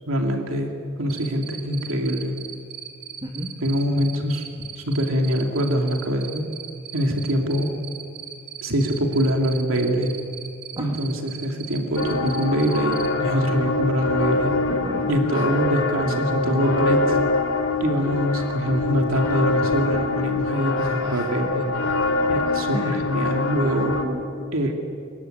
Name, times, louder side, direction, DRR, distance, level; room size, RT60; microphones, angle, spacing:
voice 1, 0.1-0.7 1.0-2.4 3.6-4.5 4.8-6.5 6.9-7.7 8.6-10.1 10.8-14.6 15.1-17.2 17.8-21.7 22.3-23.9 24.5-24.7, equal, 85° right, 2 dB, 2.7 m, -24 dB
Cricket, 1.1-13.1, right 9 dB, 55° right, 3.0 m, -37 dB
voice 2, 3.2-3.5 10.8-11.0 14.7-15.5 20.8-21.3 22.7-23.1 23.8-24.3, right 1 dB, 20° right, 0 dB, 1.9 m, -34 dB
sound 1, 12.0-24.0, left 3 dB, 85° left, 3.0 m, -24 dB
25.5 x 22.0 x 9.3 m, 2.4 s
head